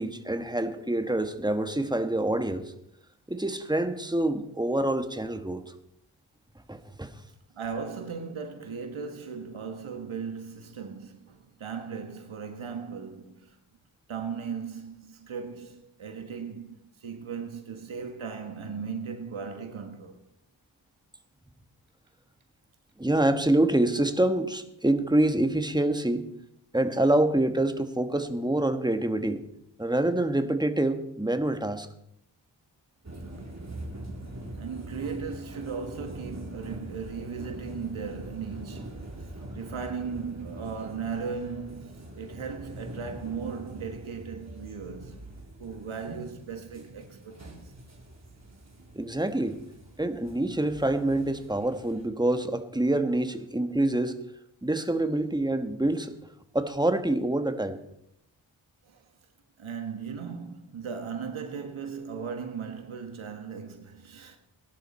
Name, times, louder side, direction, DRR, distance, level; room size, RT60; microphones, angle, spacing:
voice 1, 0.0-2.7 3.3-5.6 6.7-7.1 23.0-26.2 26.7-29.4 29.8-31.9 48.9-49.6 50.0-54.2 54.6-56.1 56.5-57.8, right 1 dB, 10° right, 1.4 m, -26 dB
voice 2, 7.5-13.6 14.1-20.2 34.6-45.2 45.6-47.7 58.8-59.1 59.6-64.4, right 6 dB, 80° right, 1.5 m, -37 dB
sound 1, 33.0-52.1, right 1 dB, 35° right, 3.4 m, -43 dB
18.5 x 11.5 x 4.3 m
wide cardioid pair, 65°, 47 cm